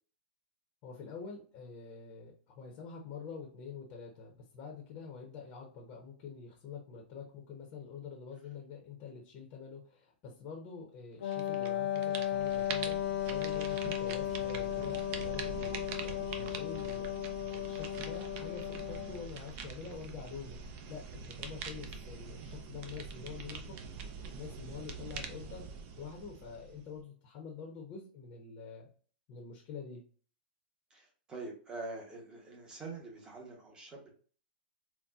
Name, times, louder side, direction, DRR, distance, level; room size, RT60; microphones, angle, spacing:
voice 1, 0.8-17.1 17.5-20.6 20.9-23.8 24.2-25.7 26.0-28.9 29.3-30.0, left 6 dB, 30° left, 0 dB, 0.7 m, -46 dB
Wind instrument woodwind instrument, 11.2-19.3, left 11 dB, 80° left, 0.5 m, -35 dB
sound 1, 11.3-11.7 12.0-27.0, right 5 dB, 30° right, 0.4 m, -44 dB
voice 2, 30.9-34.1, right 3 dB, 15° right, 0 dB, 0.9 m, -45 dB
4.0 x 2.1 x 2.3 m, 0.43 s
hypercardioid pair, 155°, 6 cm